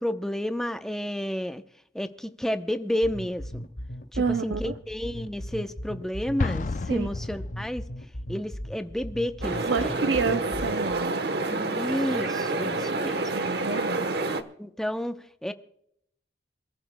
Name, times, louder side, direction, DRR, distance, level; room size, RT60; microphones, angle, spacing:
voice 1, 0.0-1.6 1.9-3.7 4.1-7.8 8.3-10.1 11.5-13.2 14.6-15.5, left 1 dB, 5° left, 8 dB, 0.7 m, -31 dB
sound 1, 3.0-11.0, equal, 75° left, 2.3 m, -37 dB
voice 2, 4.2-4.7 6.9-7.1 9.7-11.2 13.3-14.1, right 5 dB, 80° right, 9 dB, 0.5 m, -28 dB
Explosion, 6.4-8.1, left 3 dB, 45° left, 0.4 m, -31 dB
sound 2, 9.4-14.4, right 2 dB, 60° right, 1.0 m, -28 dB
27.5 x 14.0 x 2.2 m, 0.71 s
head